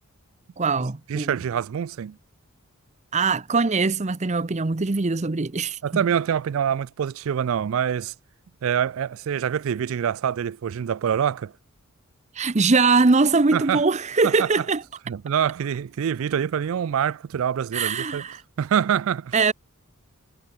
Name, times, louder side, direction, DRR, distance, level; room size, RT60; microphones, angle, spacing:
voice 1, 0.6-1.4 3.1-5.8 12.3-14.8 17.7-18.4 19.3-19.5, right 4 dB, 30° right, 0.7 m, -22 dB
voice 2, 1.1-2.2 5.8-8.1 8.6-11.5 13.5-13.8 14.2-14.5 15.1-18.2 18.6-19.3, right 8 dB, 70° right, 0.3 m, -25 dB
head